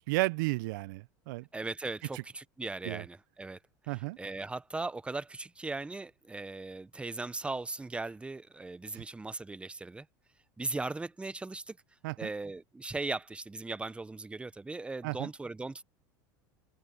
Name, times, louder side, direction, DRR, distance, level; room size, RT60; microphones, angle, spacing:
voice 1, 0.0-1.5 2.8-3.0 3.9-4.2 8.9-9.0 12.0-12.3 15.0-15.3, right 23 dB, 75° right, 0.6 m, -33 dB
voice 2, 1.5-3.6 3.8-10.1 10.6-11.8 12.2-15.8, right 3 dB, 10° right, 0.9 m, -38 dB
hypercardioid pair, 100°, 11 cm